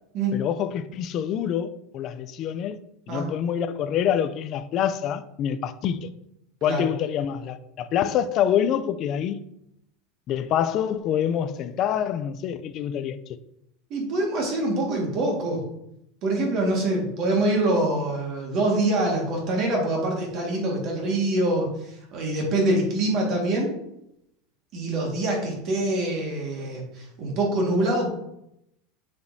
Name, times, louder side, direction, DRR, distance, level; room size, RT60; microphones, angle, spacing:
voice 1, 0.3-2.8 3.1-6.1 6.6-9.4 10.3-13.2, left 9 dB, 35° left, 0.4 m, -26 dB
voice 2, 13.9-15.6 16.2-23.7 24.7-28.1, right 1 dB, 40° right, 1.8 m, -25 dB
8.0 x 5.1 x 2.7 m
supercardioid pair, 160°, 0 cm